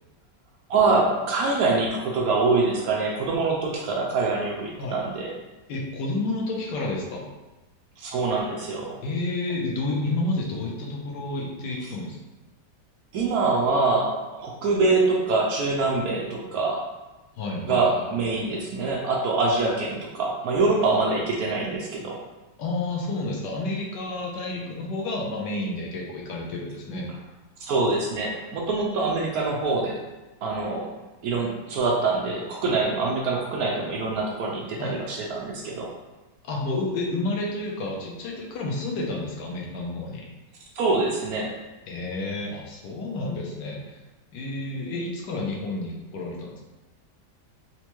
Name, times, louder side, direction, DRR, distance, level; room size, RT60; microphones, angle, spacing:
voice 1, 0.7-5.3 8.0-9.0 13.1-16.8 17.7-22.2 27.6-30.0 30.4-30.9 31.2-35.9 40.8-41.5, right 3 dB, 70° right, -1 dB, 1.0 m, -24 dB
voice 2, 5.7-7.3 9.0-12.2 17.4-18.0 22.6-27.1 34.8-35.0 36.4-40.3 41.9-44.0 44.3-46.6, left 2 dB, 85° left, -1 dB, 1.3 m, -30 dB
4.3 x 2.2 x 3.0 m, 1.1 s
omnidirectional pair, 1.9 m